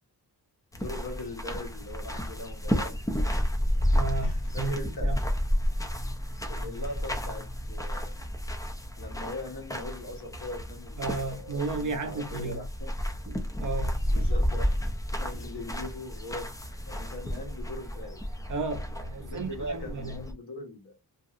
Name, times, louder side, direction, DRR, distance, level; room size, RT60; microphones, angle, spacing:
voice 1, 0.7-3.3 4.2-5.2 6.5-8.3 9.0-12.9 14.1-14.8 15.1-16.5 16.8-18.2 19.2-21.0, left 1 dB, 85° left, 1.1 m, -40 dB
sound 1, 0.7-20.3, equal, 10° left, 0.4 m, -31 dB
voice 2, 3.9-5.2 11.0-12.6 13.3-14.3 18.5-20.2, right 3 dB, 50° right, 0.7 m, -34 dB
2.9 x 2.6 x 2.4 m
wide cardioid pair, 155°, 40 cm